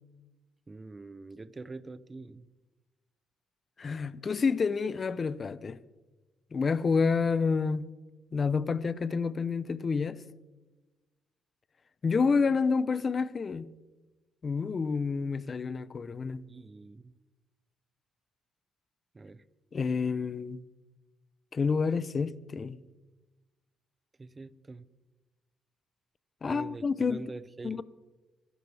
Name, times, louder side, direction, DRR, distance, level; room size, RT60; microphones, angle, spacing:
voice 1, 0.7-2.5 16.5-17.1 19.1-19.4 24.2-24.9 26.4-27.8, right 3 dB, 25° right, 0.6 m, -44 dB
voice 2, 3.8-5.8 6.5-7.9 8.3-10.2 12.0-13.7 14.4-16.4 19.7-20.6 21.5-22.8 26.4-27.2 27.6-27.8, left 5 dB, 40° left, 0.7 m, -29 dB
25.5 x 12.5 x 3.5 m
cardioid pair, 90°, 0 cm